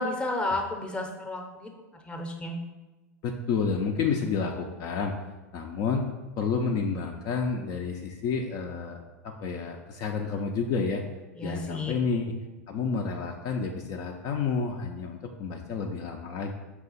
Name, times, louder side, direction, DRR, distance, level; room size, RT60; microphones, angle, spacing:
voice 1, 0.0-1.7 2.0-2.5 11.4-11.9, left 2 dB, 10° left, 2 dB, 0.7 m, -32 dB
voice 2, 3.2-5.2 5.5-6.1 6.4-11.0 11.4-12.3 12.7-16.5, left 5 dB, 45° left, 2 dB, 0.4 m, -30 dB
5.6 x 2.4 x 4.0 m, 1.2 s
hypercardioid pair, 90°, 9 cm